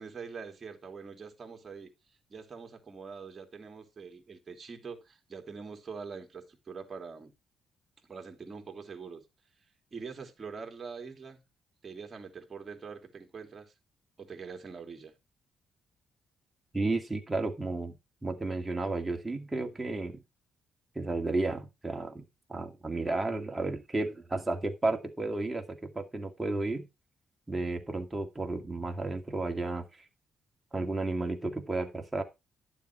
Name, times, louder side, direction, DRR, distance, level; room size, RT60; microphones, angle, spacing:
voice 1, 0.0-1.9 2.3-7.3 8.0-9.3 9.9-11.4 11.8-13.7 14.2-15.1, right 5 dB, 35° right, 3.1 m, -44 dB
voice 2, 16.7-20.2 21.0-22.2 22.5-26.9 27.5-30.0 30.7-32.2, right 2 dB, 20° right, 2.3 m, -33 dB
11.5 x 7.2 x 4.7 m
cardioid pair, 90°, 0 cm